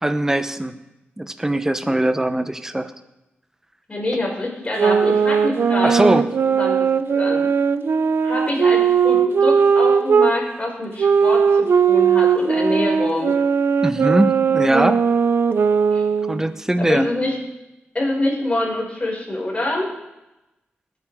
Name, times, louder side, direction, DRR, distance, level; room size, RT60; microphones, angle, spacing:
voice 1, 0.0-0.7 1.2-2.9 5.8-6.3 13.8-15.0 16.3-17.1, right 1 dB, 10° right, 10 dB, 0.9 m, -20 dB
voice 2, 3.9-7.5 8.2-13.3 15.9-16.0 16.8-17.4 17.9-19.9, left 1 dB, 30° left, -3 dB, 6.0 m, -25 dB
sound 1, 4.8-10.3 11.0-16.5, right 6 dB, 70° right, 0.6 m, -18 dB
21.5 x 9.3 x 3.7 m, 0.97 s
wide cardioid pair, 95°, 4 cm